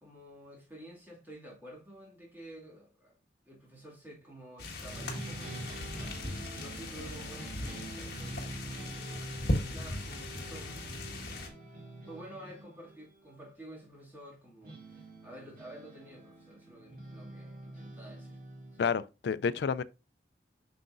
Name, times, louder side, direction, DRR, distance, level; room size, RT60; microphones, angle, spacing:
voice 1, 0.0-3.1 3.5-9.3 9.7-11.1 12.1-18.4, right 1 dB, 10° right, 2.3 m, -51 dB
sound 1, 4.6-11.5, left 1 dB, 55° left, 1.6 m, -38 dB
sound 2, 4.9-13.4 14.6-18.9, right 1 dB, 50° right, 2.2 m, -46 dB
voice 2, 18.8-19.8, left 6 dB, 70° left, 0.4 m, -30 dB
7.6 x 5.7 x 2.6 m
head